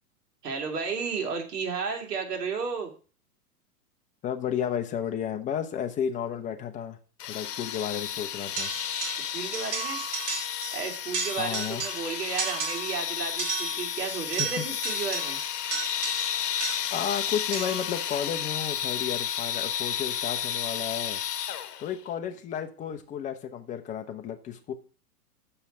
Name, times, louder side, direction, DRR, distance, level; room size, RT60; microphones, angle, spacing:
voice 1, 0.4-2.9 9.2-10.0 10.7-15.4, right 5 dB, 80° right, 3 dB, 2.9 m, -33 dB
voice 2, 4.2-7.0 7.3-8.7 11.4-11.8 14.4-14.6 16.9-21.2 21.8-24.7, left 8 dB, 15° left, 5 dB, 0.8 m, -32 dB
sound 1, 7.2-22.0, left 10 dB, 70° left, 1.1 m, -32 dB
sound 2, 8.6-9.3 9.5-10.8 11.1-12.1 12.4-13.0 13.4-17.0 17.5-17.9, right 6 dB, 30° right, 2.0 m, -34 dB
6.9 x 5.7 x 6.4 m, 0.36 s
hypercardioid pair, 140°, 47 cm